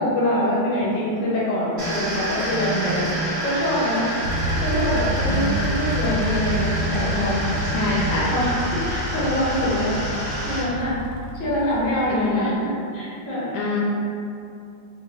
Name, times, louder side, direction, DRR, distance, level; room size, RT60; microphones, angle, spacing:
voice 1, 0.0-3.1 3.4-4.0 4.6-7.4 8.3-8.5 8.9-9.9 10.5-10.9 11.4-13.5, left 1 dB, 50° left, -8 dB, 0.6 m, -24 dB
sound 1, 1.8-10.6, right 1 dB, 45° right, 0.6 m, -28 dB
sound 2, 4.2-12.3, equal, 80° right, 1.4 m, -29 dB
voice 2, 5.3-5.6 7.7-8.3 12.1-12.6 13.5-13.8, left 2 dB, 75° left, -5 dB, 1.2 m, -25 dB
4.3 x 2.1 x 3.1 m, 2.5 s
omnidirectional pair, 2.3 m